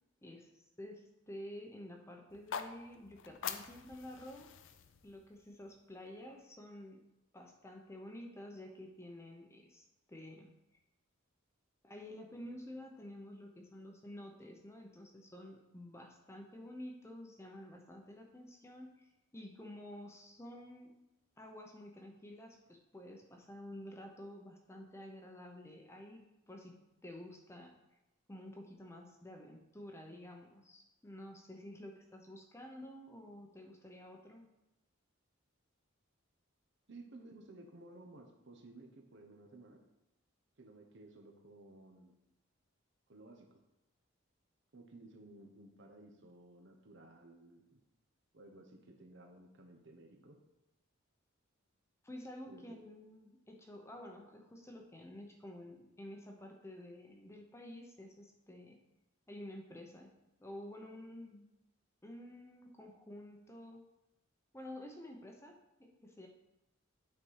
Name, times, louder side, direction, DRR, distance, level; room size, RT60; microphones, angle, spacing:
voice 1, 0.2-4.5 5.0-7.0 7.3-10.5 11.8-20.9 21.4-27.8 28.3-34.5 52.0-58.8 59.3-60.1 60.4-61.5 62.0-63.8 64.5-66.3, left 1 dB, 15° left, 2 dB, 0.7 m, -50 dB
sound 1, 2.3-6.4, left 7 dB, 60° left, 0.5 m, -46 dB
voice 2, 36.9-39.8 40.6-42.2 43.1-43.6 44.7-47.8 48.3-50.4 52.5-52.8, right 2 dB, 60° right, 3 dB, 1.0 m, -56 dB
8.4 x 4.2 x 4.7 m, 0.96 s
head